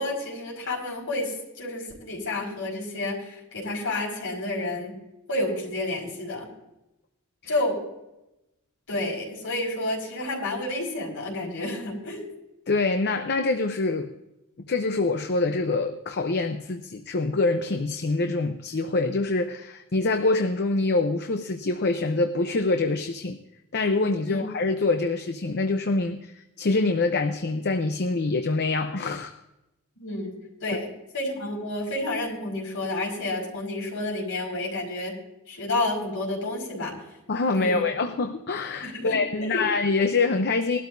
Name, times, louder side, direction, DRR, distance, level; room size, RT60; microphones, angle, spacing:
voice 1, 0.0-4.9 5.3-6.5 7.5-7.8 8.9-12.2 24.3-24.4 30.0-30.9 31.1-35.1 35.5-36.9 37.5-37.9 38.8-39.6, left 2 dB, 65° left, -2 dB, 5.3 m, -30 dB
voice 2, 12.7-14.1 14.7-23.4 23.7-26.3 26.6-29.3 37.3-40.8, left 3 dB, 50° left, 7 dB, 0.7 m, -25 dB
21.0 x 12.5 x 2.7 m, 0.93 s
head